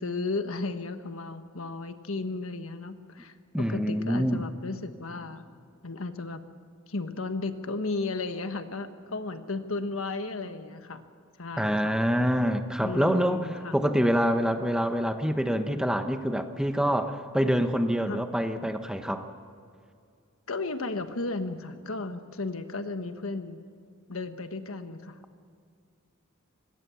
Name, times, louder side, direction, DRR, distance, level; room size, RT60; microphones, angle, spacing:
voice 1, 0.0-5.4 5.8-6.4 6.9-11.0 11.4-12.0 12.8-13.7 18.1-18.2 20.5-23.6 24.1-25.4, left 3 dB, 75° left, 8 dB, 1.4 m, -34 dB
voice 2, 3.5-4.4 11.6-13.5 13.7-19.3, equal, 5° right, 7 dB, 1.0 m, -26 dB
25.0 x 21.0 x 7.1 m, 2.3 s
head